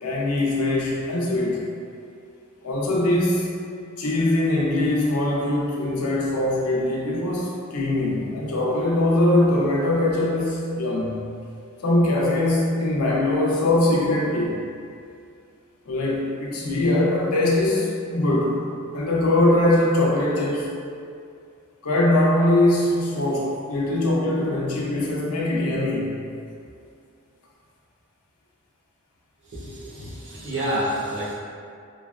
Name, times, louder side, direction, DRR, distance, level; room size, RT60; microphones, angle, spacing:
voice 1, 0.0-1.7 2.6-3.5 4.0-11.2 11.8-14.6 15.9-18.6 18.9-20.7 21.8-26.2 30.4-30.5, left 1 dB, 90° left, -4 dB, 0.6 m, -22 dB
voice 2, 29.4-31.3, right 1 dB, 60° right, -8 dB, 0.8 m, -29 dB
3.2 x 2.2 x 2.3 m, 2.4 s
head